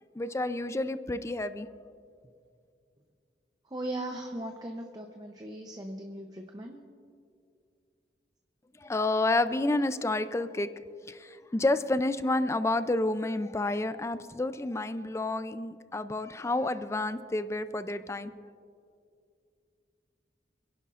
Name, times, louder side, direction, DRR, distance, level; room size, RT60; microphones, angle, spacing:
voice 1, 0.2-1.7 8.8-10.7 11.1-18.3, left 2 dB, 15° left, 12 dB, 0.4 m, -29 dB
voice 2, 3.7-6.8, right 1 dB, 20° right, 3 dB, 0.7 m, -38 dB
27.0 x 11.0 x 2.5 m, 2.3 s
head